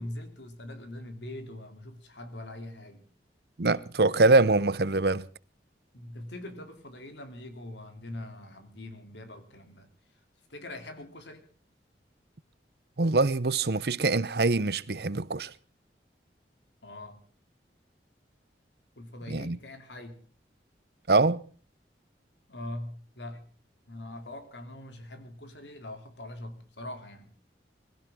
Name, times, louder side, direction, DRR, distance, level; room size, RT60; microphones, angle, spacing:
voice 1, 0.0-3.0 5.9-9.9 10.5-11.5 16.8-17.2 19.0-20.2 22.5-23.5 23.9-27.3, left 1 dB, 90° left, 3.2 m, -42 dB
voice 2, 3.6-5.2 13.0-15.5 19.3-19.6 21.1-21.4, right 3 dB, 65° right, 0.8 m, -24 dB
22.0 x 16.5 x 3.7 m
head